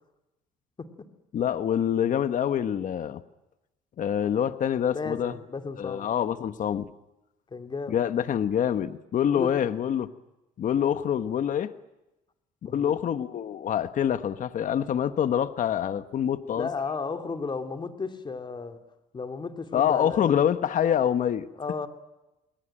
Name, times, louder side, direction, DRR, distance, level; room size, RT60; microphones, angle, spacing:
voice 1, 1.3-3.2 4.0-5.3 5.8-6.9 7.9-10.1 10.6-11.7 12.6-16.7 19.7-21.5, left 9 dB, 50° left, 1.3 m, -26 dB
voice 2, 4.9-6.1 7.5-8.0 9.3-9.6 12.6-13.0 16.6-18.8 19.1-20.3 21.6-21.9, left 4 dB, 30° left, 2.8 m, -34 dB
29.5 x 21.5 x 9.0 m
cardioid pair, 110°, 17 cm